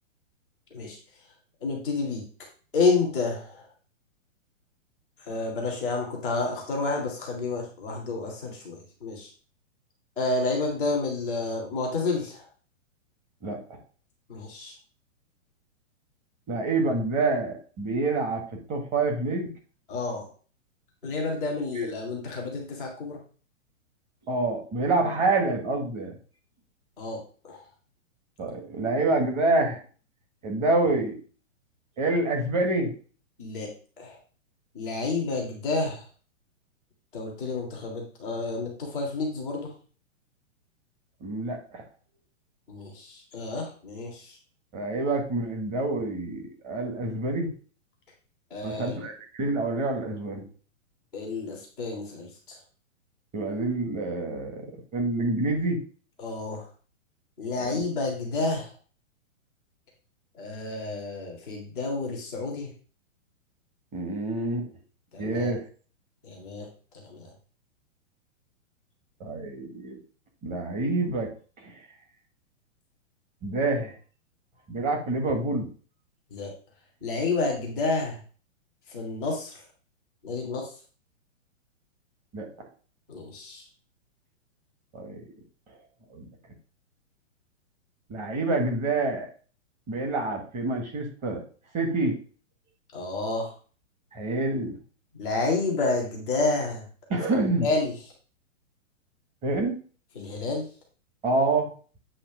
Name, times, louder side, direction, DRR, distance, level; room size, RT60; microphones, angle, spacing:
voice 1, 1.6-2.2 2.7-3.6 5.3-9.3 10.2-12.4 14.3-14.7 19.9-20.3 21.0-23.2 27.0-27.2 27.4-27.6 33.4-33.7 34.0-34.2 34.7-36.0 37.1-39.7 42.7-44.3 48.5-49.1 51.1-52.6 56.2-56.7 57.4-58.7 60.3-62.7 65.1-65.5 66.2-66.7 67.1-67.3 76.3-76.5 77.0-78.2 78.9-79.6 80.2-80.7 83.1-83.6 92.9-93.5 95.2-96.8 97.6-97.9 100.1-100.6, left 3 dB, ahead, -17 dB, 0.4 m, -29 dB
voice 2, 13.4-13.8 16.5-18.4 18.7-19.5 21.7-21.9 24.3-26.1 28.4-29.8 30.4-31.2 32.0-32.9 41.2-41.8 44.7-47.5 48.6-50.4 53.3-55.8 57.6-57.8 63.9-64.7 65.2-65.6 69.2-70.0 70.4-71.3 71.6-71.7 73.4-73.9 74.7-75.7 82.3-82.5 84.9-85.2 86.1-86.3 88.1-89.3 89.9-91.4 91.7-92.2 94.1-94.7 97.1-97.7 99.4-99.8 101.2-101.7, right 2 dB, 15° right, 2 dB, 1.3 m, -27 dB
8.6 x 3.0 x 6.0 m, 0.40 s
hypercardioid pair, 160°, 40 cm